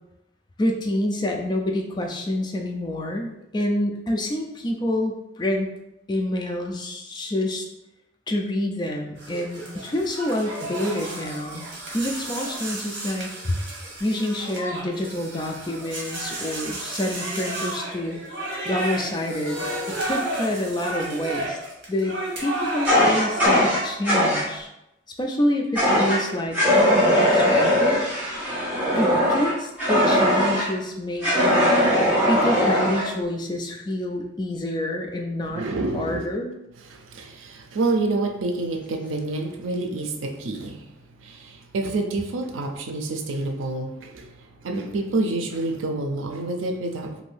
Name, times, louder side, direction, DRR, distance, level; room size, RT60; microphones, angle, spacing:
voice 1, 0.6-5.7 6.1-7.7 8.3-11.7 11.9-13.6 14.0-18.2 18.6-21.6 21.9-24.7 25.2-26.6 27.0-28.0 29.0-31.7 32.3-35.6 35.9-36.5, left 1 dB, 20° left, 2 dB, 0.3 m, -27 dB
sound 1, 9.2-23.5, right 1 dB, 65° right, 0.9 m, -33 dB
Fire, 22.8-24.5 25.8-26.2 26.5-30.7 31.2-33.1, equal, 10° right, 0.8 m, -20 dB
voice 2, 35.5-36.3 36.9-47.2, right 2 dB, 85° right, 5 dB, 0.4 m, -28 dB
2.7 x 2.6 x 3.2 m, 0.87 s
head